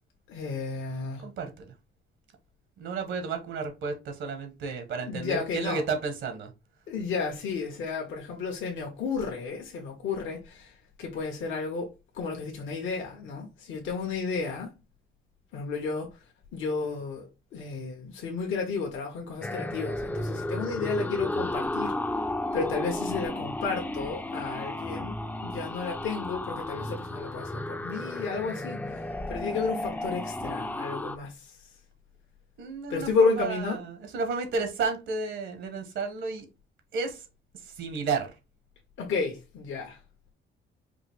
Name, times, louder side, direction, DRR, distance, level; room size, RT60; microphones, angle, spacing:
voice 1, 0.3-1.3 5.0-5.8 6.9-10.7 11.0-11.9 12.1-14.7 15.5-16.1 16.5-21.9 22.5-31.6 32.9-33.8 39.0-40.0, left 4 dB, 75° left, 1.1 m, -32 dB
voice 2, 1.2-1.6 2.8-6.5 32.6-36.4 36.9-37.2 37.8-38.3, right 4 dB, 75° right, 1.2 m, -32 dB
sound 1, 19.4-31.2, left 1 dB, 10° left, 0.4 m, -33 dB
4.9 x 2.5 x 3.4 m
cardioid pair, 90°, 20 cm